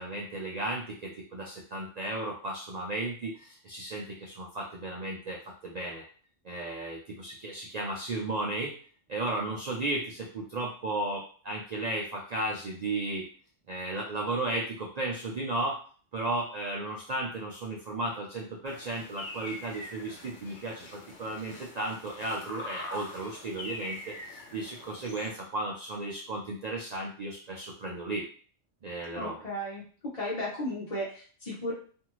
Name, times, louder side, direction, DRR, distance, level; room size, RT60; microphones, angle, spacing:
voice 1, 0.0-6.0 6.4-8.7 9.1-13.3 13.7-15.8 16.1-28.3 28.8-29.4, right 2 dB, 75° right, -2 dB, 0.3 m, -34 dB
sound 1, 18.7-25.3, left 2 dB, 70° left, 1.0 m, -44 dB
voice 2, 29.2-29.8 30.1-31.7, left 1 dB, 35° left, -5 dB, 0.7 m, -34 dB
2.6 x 2.4 x 3.0 m, 0.43 s
omnidirectional pair, 1.3 m